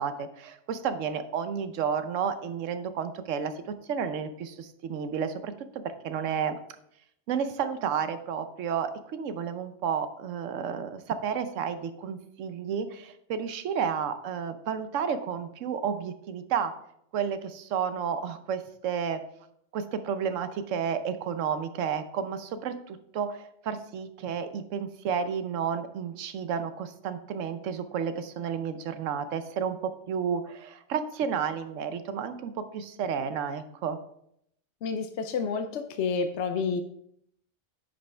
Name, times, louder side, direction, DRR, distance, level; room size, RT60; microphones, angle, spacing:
voice 1, 0.0-5.5 5.8-6.6 7.3-16.7 17.1-19.2 19.7-34.0, right 7 dB, 85° right, 10 dB, 1.1 m, -31 dB
voice 2, 34.8-36.8, left 5 dB, 70° left, 7 dB, 0.9 m, -29 dB
9.7 x 5.3 x 3.4 m, 0.73 s
omnidirectional pair, 1.3 m